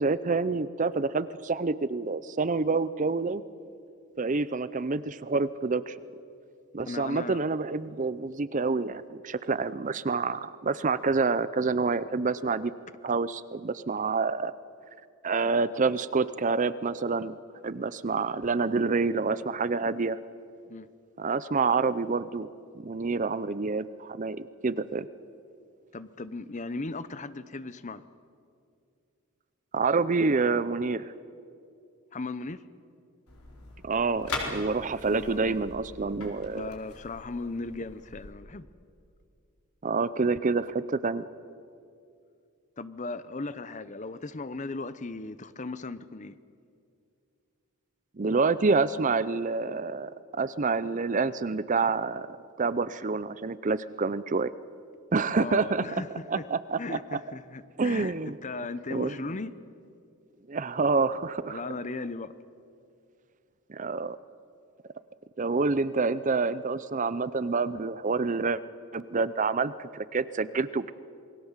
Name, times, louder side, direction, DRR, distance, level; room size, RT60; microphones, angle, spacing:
voice 1, 0.0-3.4 4.2-6.0 6.7-12.7 13.0-14.5 15.2-20.2 21.2-22.5 22.7-25.1 29.7-31.1 33.8-36.7 39.8-41.3 48.2-54.5 55.1-55.8 56.3-57.2 57.8-58.4 58.9-59.1 60.5-61.6 63.7-64.2 65.4-68.6 68.9-70.9, right 4 dB, 35° right, 16 dB, 0.5 m, -27 dB
voice 2, 6.8-7.4 20.7-20.9 25.9-28.0 32.1-32.6 35.1-35.6 36.5-38.7 42.8-46.4 55.3-56.5 56.8-59.5 61.5-62.3, left 3 dB, 35° left, 14 dB, 0.7 m, -37 dB
sound 1, 33.3-38.3, left 3 dB, 80° left, 4.3 m, -41 dB
28.0 x 20.5 x 7.4 m, 2.4 s
head